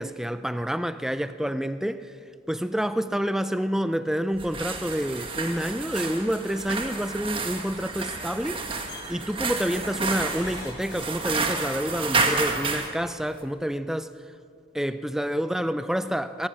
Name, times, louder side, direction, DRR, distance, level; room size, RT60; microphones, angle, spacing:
voice 1, 0.0-2.1 2.5-8.6 9.1-14.1 14.7-16.5, equal, 5° right, 0.4 m, -28 dB
sound 1, 4.3-12.9, right 3 dB, 30° right, 1.7 m, -30 dB
sound 2, 8.9-9.2 10.3-12.0 13.2-13.3 13.5-13.6, left 2 dB, 65° left, 4.8 m, -44 dB
22.5 x 17.5 x 7.6 m
head